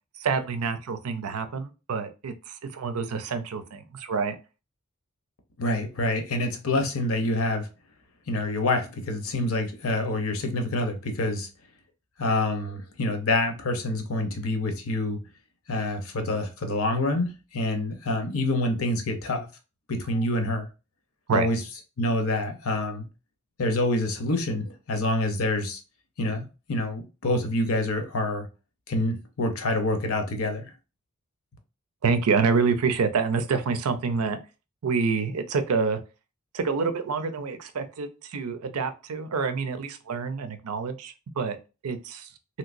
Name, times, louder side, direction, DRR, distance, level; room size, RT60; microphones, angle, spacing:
voice 1, 0.2-4.4 21.3-21.5 32.0-34.4 34.8-36.0 36.5-41.6 41.8-42.3, right 5 dB, 80° right, 0.5 m, -27 dB
voice 2, 5.6-7.7 8.3-11.5 12.2-15.2 15.7-19.4 19.9-20.7 21.3-21.6 22.0-23.0 23.6-25.8 26.2-28.5 28.9-30.7, left 2 dB, 70° left, 0.7 m, -27 dB
3.1 x 2.9 x 2.5 m
head